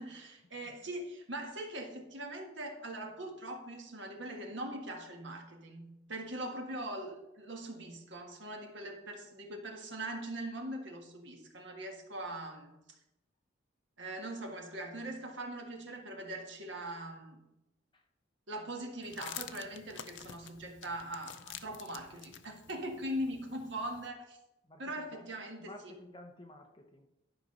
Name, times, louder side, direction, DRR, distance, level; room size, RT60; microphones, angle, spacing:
voice 1, 0.0-12.7 14.0-17.4 18.5-24.4 24.8-25.7, right 1 dB, 65° right, 2 dB, 1.6 m, -41 dB
sound 1, 19.0-24.1, left 10 dB, 65° left, 0.5 m, -49 dB
voice 2, 24.6-25.3 25.6-27.1, left 1 dB, 25° left, 4 dB, 0.7 m, -53 dB
11.0 x 5.0 x 5.3 m, 0.92 s
head